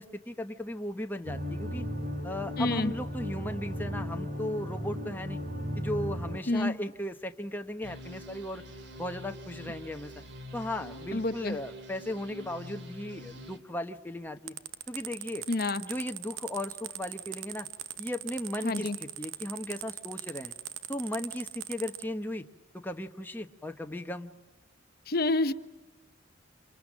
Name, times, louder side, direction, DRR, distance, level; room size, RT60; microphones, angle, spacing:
voice 1, 0.0-1.8 2.2-5.4 5.8-8.6 9.0-10.1 10.5-14.5 14.9-15.5 15.8-17.7 18.0-20.5 20.9-22.5 22.7-24.3, left 1 dB, 10° left, 5 dB, 1.1 m, -36 dB
sound 1, 1.3-6.4, equal, 45° right, 4.0 m, -35 dB
voice 2, 2.6-2.9 6.5-6.8 11.1-11.6 15.5-15.8 18.6-19.0 25.1-25.5, left 2 dB, 50° left, 11 dB, 0.9 m, -28 dB
sound 2, 7.8-13.6, left 1 dB, 60° right, 2.7 m, -46 dB
sound 3, 14.5-22.0, right 13 dB, 85° right, 0.9 m, -40 dB
27.5 x 27.5 x 7.5 m, 1.1 s
head